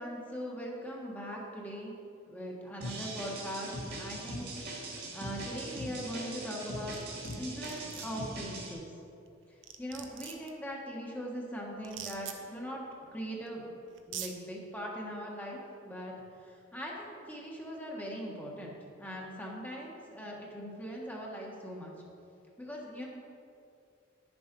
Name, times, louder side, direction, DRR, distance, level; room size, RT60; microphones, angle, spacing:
voice 1, 0.0-1.9 2.3-4.5 5.1-7.0 7.4-8.9 9.8-12.8 13.1-13.7 14.1-16.1 16.4-21.9 22.6-23.1, equal, 10° left, -3 dB, 1.4 m, -40 dB
sound 1, 2.8-8.7, right 1 dB, 60° right, 2.3 m, -41 dB
sound 2, 6.9-7.4 7.6-8.1 9.3-9.4 9.6-10.5 11.8-12.4 13.5-13.6 14.0-14.3, right 9 dB, 85° right, 0.8 m, -42 dB
10.0 x 7.1 x 5.3 m, 2.5 s
head